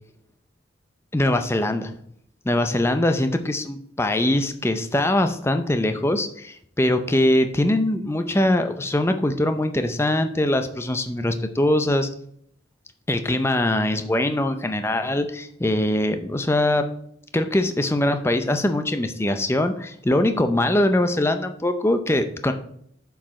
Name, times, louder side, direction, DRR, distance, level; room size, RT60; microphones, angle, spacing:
voice 1, 1.1-1.9 2.4-12.1 13.1-16.8 17.3-22.5, left 1 dB, 15° left, 8 dB, 0.5 m, -22 dB
7.4 x 4.8 x 4.8 m, 0.67 s
head